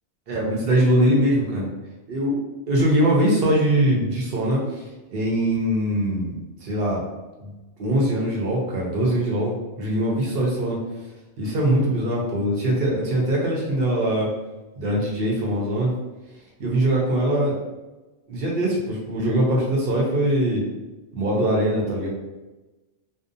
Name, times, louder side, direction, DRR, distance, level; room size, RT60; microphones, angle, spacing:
voice 1, 0.3-1.7 2.1-2.4 2.7-4.6 5.1-7.0 7.4-7.5 7.8-10.8 11.4-14.3 14.8-15.9 16.6-17.5 18.3-20.6 21.1-22.1, right 1 dB, 60° right, -2 dB, 0.8 m, -22 dB
2.6 x 2.0 x 2.6 m, 1.1 s
omnidirectional pair, 1.2 m